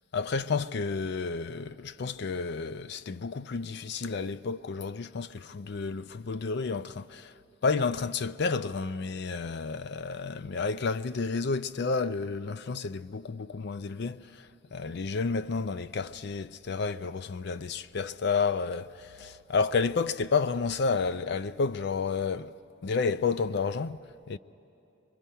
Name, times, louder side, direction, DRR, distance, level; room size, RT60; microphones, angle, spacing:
voice 1, 0.1-24.4, left 4 dB, 55° left, 0.4 m, -31 dB
24.0 x 22.5 x 5.6 m
head